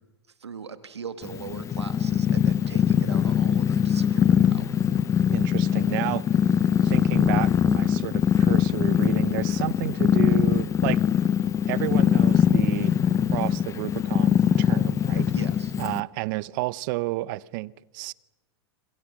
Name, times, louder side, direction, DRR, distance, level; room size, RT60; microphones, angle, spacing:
voice 1, 0.4-4.8 15.3-15.8, right 6 dB, 90° right, 1.9 m, -40 dB
Purr, 1.2-16.0, left 8 dB, 20° left, 0.7 m, -22 dB
voice 2, 5.3-6.2 6.8-11.0 11.7-12.9 13.3-15.3 15.8-18.1, right 20 dB, 50° right, 0.9 m, -31 dB
27.5 x 25.0 x 6.3 m
hypercardioid pair, 110°, 14 cm